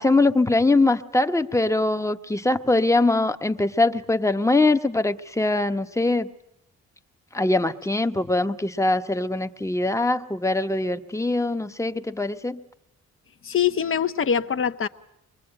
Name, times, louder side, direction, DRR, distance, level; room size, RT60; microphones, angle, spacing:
voice 1, 0.0-6.3 7.3-12.6, left 2 dB, 10° left, 9 dB, 1.1 m, -22 dB
voice 2, 13.4-14.9, left 8 dB, 45° left, 11 dB, 1.0 m, -23 dB
24.5 x 22.0 x 8.9 m, 0.79 s
cardioid pair, 100°, 30 cm